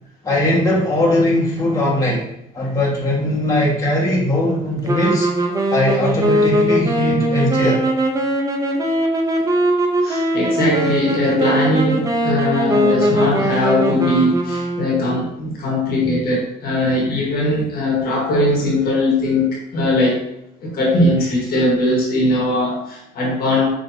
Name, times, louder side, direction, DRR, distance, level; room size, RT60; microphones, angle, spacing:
voice 1, 0.2-2.2 2.5-5.3 5.7-7.8, left 1 dB, 20° left, -6 dB, 1.5 m, -19 dB
sound 1, 4.9-15.3, right 1 dB, 20° right, 0.7 m, -20 dB
voice 2, 10.0-20.2 20.6-23.7, left 1 dB, 65° left, -2 dB, 1.4 m, -19 dB
5.6 x 3.4 x 2.7 m, 0.80 s
cardioid pair, 110°, 17 cm